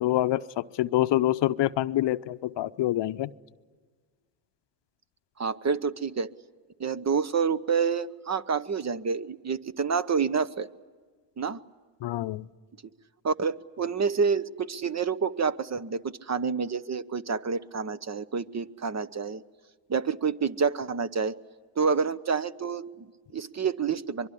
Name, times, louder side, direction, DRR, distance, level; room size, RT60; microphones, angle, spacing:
voice 1, 0.0-3.3 12.0-12.4, left 14 dB, 55° left, 14 dB, 0.7 m, -26 dB
voice 2, 5.4-6.3 6.8-10.7 11.4-11.6 13.2-19.4 19.9-21.3 21.8-24.3, right 5 dB, 35° right, 15 dB, 0.9 m, -28 dB
24.0 x 23.0 x 10.0 m, 1.5 s
supercardioid pair, 65°, 50 cm